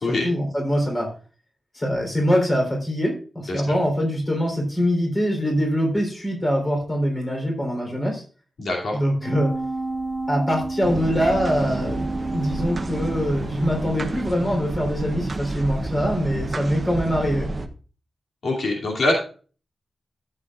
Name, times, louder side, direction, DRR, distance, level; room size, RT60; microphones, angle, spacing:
voice 1, 0.2-1.1 1.7-8.2 8.9-9.5 10.3-12.0 12.3-17.5, equal, 20° left, 1 dB, 3.6 m, -23 dB
voice 2, 8.6-9.0 18.4-19.1, left 2 dB, 65° left, -1 dB, 2.6 m, -24 dB
sound 1, 9.2-13.8 14.2-14.3, right 2 dB, 5° left, 3.4 m, -31 dB
sound 2, 10.8-17.7, right 2 dB, 30° right, 0.8 m, -30 dB
13.0 x 7.9 x 2.4 m, 0.38 s
wide cardioid pair, 170°, 0 cm